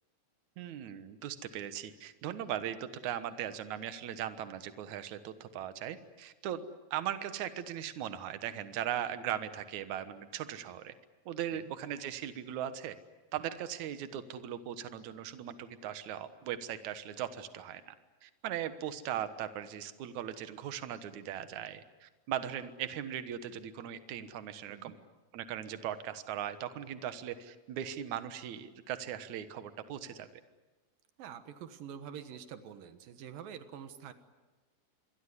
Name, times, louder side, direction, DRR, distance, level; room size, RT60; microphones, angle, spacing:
voice 1, 0.6-10.9 11.3-13.0 13.3-18.0 18.2-25.0 25.3-30.3, right 10 dB, 65° right, 11 dB, 2.5 m, -39 dB
voice 2, 31.2-34.1, right 8 dB, 80° right, 10 dB, 3.1 m, -46 dB
26.5 x 22.0 x 9.8 m, 1.2 s
omnidirectional pair, 3.9 m